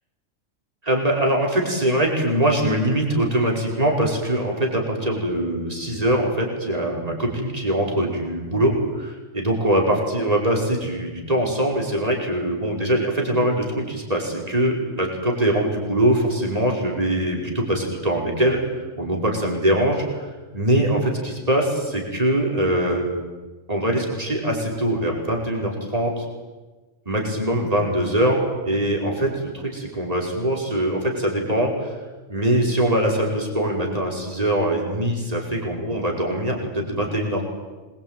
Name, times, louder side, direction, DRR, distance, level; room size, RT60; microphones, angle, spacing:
voice 1, 0.8-18.6 18.9-20.0 20.5-23.1 23.7-26.3 27.1-31.9 32.3-37.4, right 1 dB, 30° right, -1 dB, 5.4 m, -22 dB
26.0 x 23.0 x 9.2 m, 1.2 s
omnidirectional pair, 1.3 m